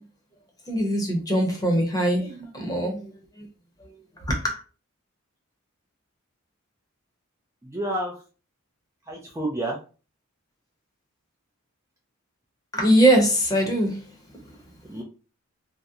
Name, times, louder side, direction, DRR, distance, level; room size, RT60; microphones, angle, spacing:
voice 1, 0.7-3.5 3.8-3.9 4.3-4.6 12.7-14.0, right 1 dB, 15° left, 0.8 m, -22 dB
voice 2, 7.6-8.2 9.1-9.8 14.8-15.0, right 1 dB, 15° right, 0.4 m, -29 dB
2.7 x 2.1 x 3.6 m
head